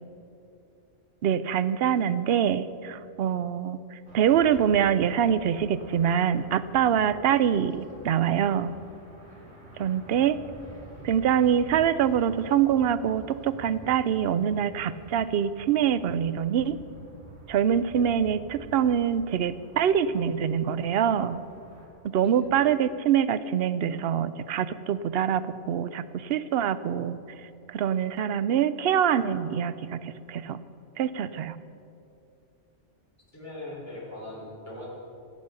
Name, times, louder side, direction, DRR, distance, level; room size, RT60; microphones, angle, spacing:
voice 1, 1.2-8.7 9.8-10.4 11.0-16.8 17.5-21.4 22.0-27.2 27.7-30.6 31.0-31.6, right 9 dB, 65° right, 14 dB, 0.7 m, -25 dB
sound 1, 4.1-21.9, right 1 dB, 85° right, 2.6 m, -48 dB
voice 2, 9.2-9.7 22.2-22.4 33.3-34.9, left 1 dB, 15° left, -6 dB, 3.6 m, -41 dB
16.0 x 8.2 x 6.9 m, 2.7 s
omnidirectional pair, 1.2 m